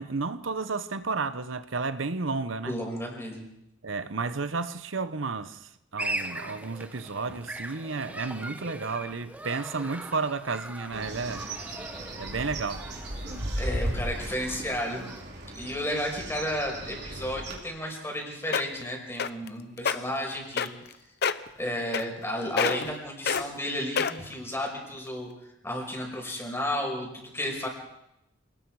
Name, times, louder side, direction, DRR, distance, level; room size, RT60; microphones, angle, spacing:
voice 1, 0.0-2.7 3.8-11.5 12.2-12.9, right 4 dB, 90° right, 0.9 m, -32 dB
voice 2, 2.7-3.5 13.6-15.0 15.5-20.7 21.6-25.3 25.6-27.7, left 1 dB, 15° left, 5.5 m, -32 dB
sound 1, 6.0-15.2, right 1 dB, 10° right, 1.2 m, -40 dB
Bird, 10.9-17.6, right 1 dB, 60° right, 4.2 m, -36 dB
sound 2, 18.1-18.2 18.5-18.8 19.2-19.5 19.8-20.0 20.6-20.9 21.2-21.5 21.9-22.3 22.6-22.9 23.3-23.4 24.0-24.3 24.9-25.0, left 6 dB, 60° left, 0.8 m, -26 dB
27.5 x 19.5 x 4.8 m
head